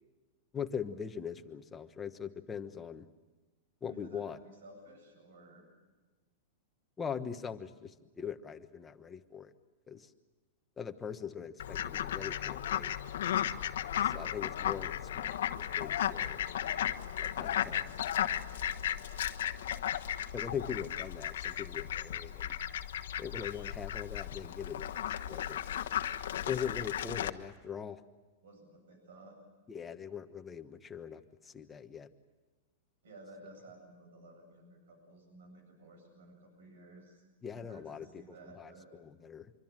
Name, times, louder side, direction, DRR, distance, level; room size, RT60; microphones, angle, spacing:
voice 1, 0.5-3.1 3.8-4.4 7.0-9.5 9.9-10.1 10.8-12.9 14.0-16.4 17.2-17.9 20.3-22.5 23.2-25.6 26.4-28.0 29.7-32.1 37.4-38.1 38.6-38.7 39.0-39.5, left 7 dB, 15° left, 7 dB, 1.2 m, -41 dB
voice 2, 3.9-5.7 28.4-29.4 33.0-37.2 37.5-38.9, right 2 dB, 80° right, 5 dB, 7.9 m, -55 dB
Fowl, 11.6-27.3, left 10 dB, 75° left, 1.2 m, -35 dB
25.5 x 24.5 x 7.5 m, 1.2 s
supercardioid pair, 155°, 0 cm